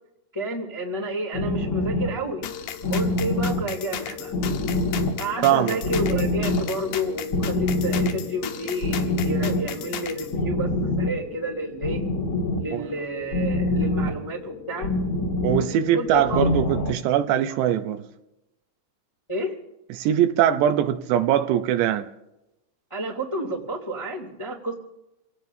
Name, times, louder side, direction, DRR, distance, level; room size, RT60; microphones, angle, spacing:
voice 1, 0.3-2.4 2.9-4.3 5.2-12.0 12.6-14.9 15.9-16.5 19.3-19.5 22.9-24.7, right 1 dB, 10° left, 1.3 m, -30 dB
sound 1, 1.3-16.9, left 2 dB, 40° left, 2.1 m, -27 dB
sound 2, 2.4-10.3, left 10 dB, 75° left, 2.8 m, -36 dB
voice 2, 5.4-5.8 12.7-12.9 15.4-18.0 19.9-22.1, right 10 dB, 80° right, 2.8 m, -22 dB
29.0 x 17.5 x 2.7 m
omnidirectional pair, 5.2 m